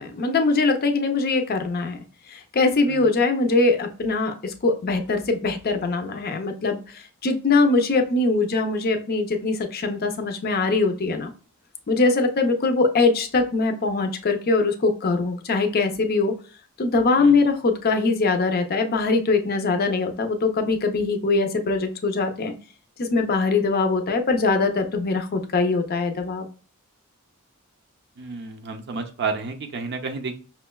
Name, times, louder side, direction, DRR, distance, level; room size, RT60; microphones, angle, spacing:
voice 1, 0.0-2.0 2.3-11.3 11.9-16.3 16.8-22.5 23.0-26.5, left 3 dB, 45° left, 6 dB, 0.5 m, -22 dB
voice 2, 28.2-30.4, right 4 dB, 50° right, 5 dB, 0.5 m, -31 dB
5.4 x 2.1 x 2.2 m, 0.39 s
head